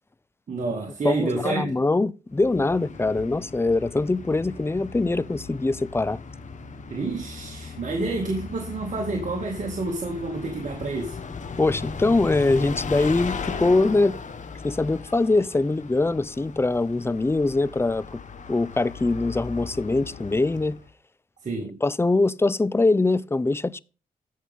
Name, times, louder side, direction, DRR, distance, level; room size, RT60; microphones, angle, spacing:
voice 1, 0.5-1.8 6.9-11.2 21.4-21.8, right 3 dB, 55° right, 2.3 m, -29 dB
voice 2, 1.0-6.2 11.6-14.2 14.6-18.2 18.5-20.8 21.8-23.8, left 2 dB, 15° left, 0.5 m, -23 dB
Bus, 2.3-20.9, left 5 dB, 55° left, 1.3 m, -37 dB
15.0 x 5.6 x 3.7 m
cardioid pair, 65°, 15 cm